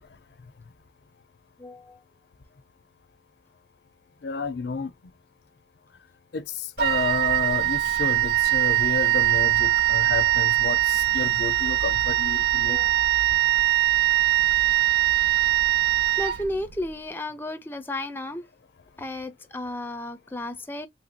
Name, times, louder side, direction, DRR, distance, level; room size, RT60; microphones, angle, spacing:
voice 1, 1.6-2.0 12.7-13.1 16.2-18.4 19.0-20.9, left 1 dB, 10° left, 0.4 m, -33 dB
voice 2, 4.2-4.9 6.3-12.8, left 4 dB, 70° left, 0.5 m, -31 dB
Wind instrument woodwind instrument, 6.8-16.9, right 14 dB, 60° right, 0.3 m, -22 dB
3.4 x 2.7 x 2.4 m
head